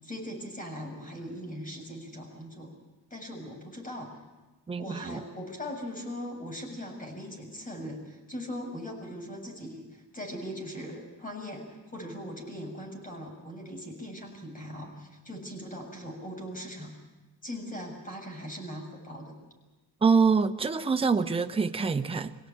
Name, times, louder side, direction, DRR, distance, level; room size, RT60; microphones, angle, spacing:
voice 1, 0.0-2.7 3.1-4.1 4.8-16.9 17.4-19.3, equal, 20° left, 2 dB, 7.3 m, -40 dB
voice 2, 4.7-5.2 20.0-22.4, right 5 dB, 15° right, 7 dB, 1.0 m, -25 dB
25.0 x 17.0 x 8.9 m, 1.2 s
cardioid pair, 115°, 40 cm